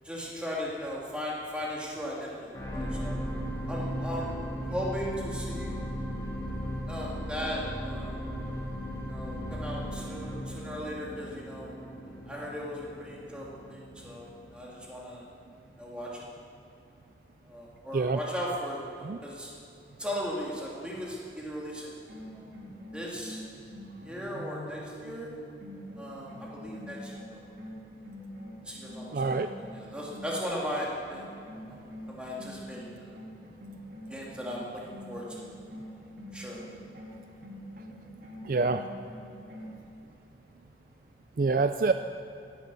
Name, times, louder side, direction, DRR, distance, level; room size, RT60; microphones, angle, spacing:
voice 1, 0.0-3.1 3.7-4.3 4.7-5.7 6.9-8.2 9.1-11.8 12.3-15.2 15.8-16.3 17.5-19.5 20.0-21.9 22.3-22.4 22.9-23.4 24.0-25.3 26.0-27.5 28.6-29.4 29.7-31.3 31.7-31.8 32.1-33.2 34.1-34.8 35.1-35.4 36.3-36.6, equal, 5° right, -4 dB, 2.4 m, -37 dB
sound 1, 2.5-14.9 15.5-15.6, equal, 20° left, 2.3 m, -36 dB
sound 2, 22.1-30.8 31.1-39.8, equal, 75° right, 3.1 m, -45 dB
voice 2, 29.1-29.5 38.4-38.8 41.4-41.9, right 4 dB, 50° right, 8 dB, 0.4 m, -26 dB
16.0 x 10.0 x 6.9 m, 2.6 s
head